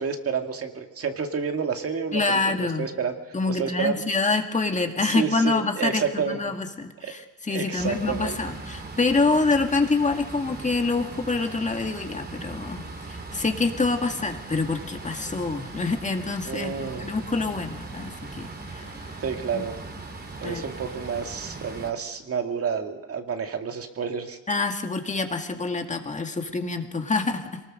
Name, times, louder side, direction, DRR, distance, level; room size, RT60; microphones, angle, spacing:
voice 1, 0.0-3.1 3.5-4.0 5.0-6.4 7.0-7.1 7.5-8.4 16.5-17.1 19.2-19.8 20.4-24.4, right 6 dB, 50° right, 5 dB, 2.1 m, -29 dB
voice 2, 2.1-2.9 3.3-18.9 19.5-19.7 20.4-20.6 24.5-27.6, left 3 dB, 25° left, 4 dB, 2.1 m, -26 dB
sound 1, 7.8-21.9, right 3 dB, 30° right, 2.9 m, -39 dB
23.5 x 19.5 x 6.5 m, 1.3 s
cardioid pair, 90°, 30 cm